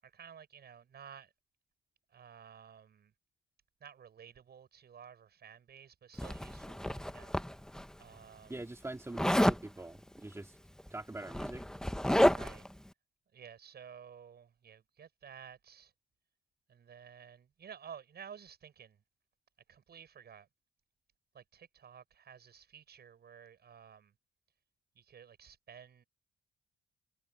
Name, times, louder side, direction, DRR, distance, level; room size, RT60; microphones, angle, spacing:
voice 1, 0.0-1.3 2.1-3.1 3.8-7.3 8.0-8.7 12.3-12.7 13.3-15.9 16.7-19.0 19.7-20.5 21.3-24.1 24.9-26.0, right 7 dB, 55° right, 7.0 m, -53 dB
Zipper (clothing), 6.2-7.8 9.2-9.6 10.8-10.9 11.2-12.7, equal, 5° left, 1.2 m, -30 dB
voice 2, 8.5-10.6 10.9-11.6, right 2 dB, 15° right, 3.2 m, -43 dB
cardioid pair, 90°, 20 cm